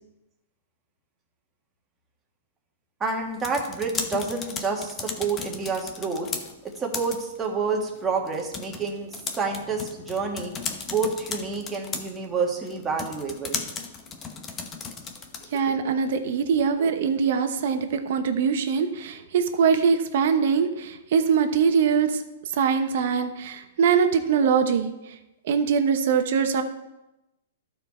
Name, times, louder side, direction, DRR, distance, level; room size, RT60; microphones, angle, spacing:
voice 1, 3.0-6.3 6.8-9.1 9.4-10.5 10.9-13.6, right 4 dB, 15° right, 0 dB, 1.7 m, -28 dB
sound 1, 3.2-15.7, left 5 dB, 20° left, 0.9 m, -37 dB
voice 2, 15.5-22.1 22.6-24.9 25.5-26.6, right 6 dB, 60° right, 8 dB, 1.0 m, -22 dB
12.5 x 4.7 x 4.3 m, 0.95 s
hypercardioid pair, 140°, 0 cm